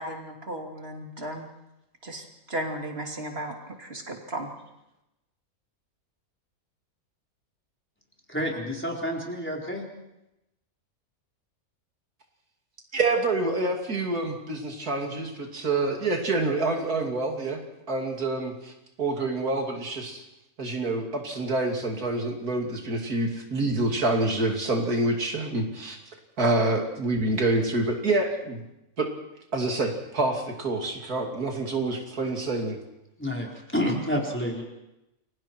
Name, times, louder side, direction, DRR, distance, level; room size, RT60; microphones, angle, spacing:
voice 1, 0.0-1.5 2.0-4.5, right 1 dB, 40° right, 1 dB, 3.2 m, -35 dB
voice 2, 8.3-9.8 33.2-34.6, equal, 5° left, -2 dB, 4.0 m, -29 dB
voice 3, 12.9-17.6 17.9-18.7 19.0-20.2 20.6-26.0 26.4-28.6 29.0-29.1 29.5-32.8, right 2 dB, 85° right, 2 dB, 3.2 m, -27 dB
29.5 x 23.0 x 4.5 m, 0.91 s
omnidirectional pair, 1.5 m